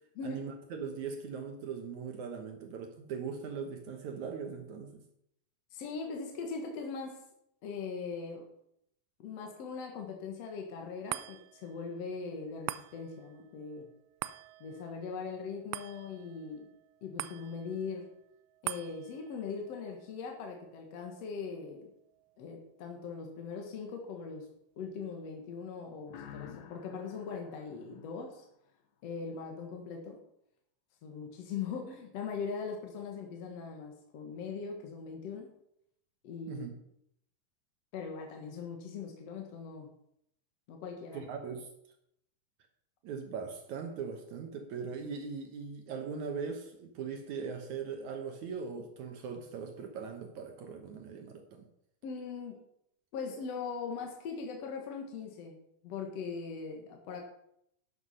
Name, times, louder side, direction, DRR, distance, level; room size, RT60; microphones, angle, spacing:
voice 1, 0.2-5.0 36.5-36.7 41.1-41.7 43.0-51.7, right 6 dB, 65° right, 4 dB, 1.9 m, -40 dB
voice 2, 5.7-7.2 7.6-8.5 9.2-13.9 14.6-16.7 17.0-18.1 18.6-21.9 22.4-24.5 24.8-28.5 29.0-30.2 31.0-35.5 36.2-36.7 37.9-39.9 40.7-41.3 52.0-52.6 53.1-55.6 55.8-57.2, left 5 dB, 60° left, 2 dB, 1.8 m, -40 dB
sound 1, 11.1-23.7 24.1-24.2, right 17 dB, 90° right, 2.7 m, -46 dB
sound 2, 26.1-28.8, left 10 dB, 85° left, 1.6 m, -51 dB
11.5 x 8.0 x 5.6 m, 0.75 s
omnidirectional pair, 4.8 m